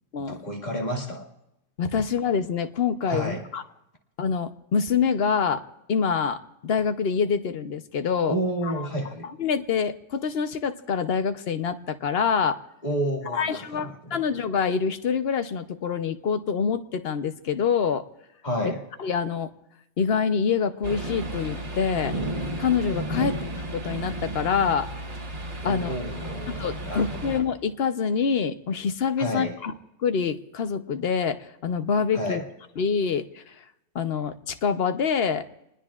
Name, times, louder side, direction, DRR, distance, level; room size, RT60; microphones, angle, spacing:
voice 1, 0.3-1.2 3.0-3.5 8.3-9.3 12.8-14.2 18.4-18.8 23.2-23.3 25.6-27.4 29.2-29.6 32.1-32.5, right 1 dB, 35° left, 0 dB, 2.2 m, -30 dB
voice 2, 1.8-3.6 4.2-5.6 5.9-8.3 8.6-8.7 9.4-12.6 13.3-18.1 19.0-19.5 20.0-22.2 22.6-23.4 23.7-24.9 25.6-25.9 26.5-29.7 30.0-32.4 32.8-33.6 33.9-35.5, left 6 dB, 55° left, 10 dB, 1.0 m, -26 dB
sound 1, 20.8-27.4, right 1 dB, 65° right, 2.5 m, -33 dB
27.5 x 20.5 x 2.4 m, 0.86 s
omnidirectional pair, 1.3 m